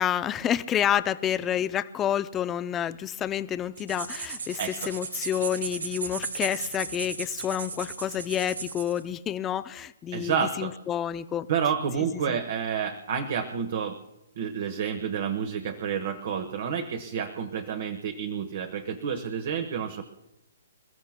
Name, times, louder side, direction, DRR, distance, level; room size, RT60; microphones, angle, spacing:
voice 1, 0.0-4.6 4.9-11.5 12.1-12.4, left 10 dB, 15° left, 12 dB, 0.4 m, -29 dB
sound 1, 3.8-9.0, right 5 dB, 85° right, 2.2 m, -36 dB
voice 2, 4.6-4.9 10.1-10.7 11.5-14.0 14.4-20.0, right 7 dB, 45° right, 8 dB, 1.2 m, -29 dB
28.0 x 14.5 x 2.2 m, 0.98 s
hypercardioid pair, 165°, 0 cm